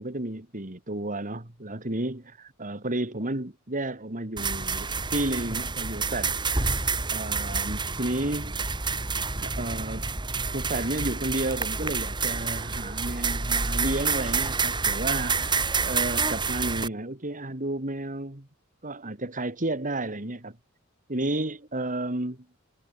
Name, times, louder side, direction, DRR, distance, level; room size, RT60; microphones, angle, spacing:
voice 1, 0.0-6.8 7.1-8.6 9.4-10.1 10.5-18.5 18.8-20.6 21.1-22.5, right 2 dB, 40° right, 2.8 m, -32 dB
sound 1, 4.4-16.9, right 4 dB, 20° right, 1.7 m, -28 dB
head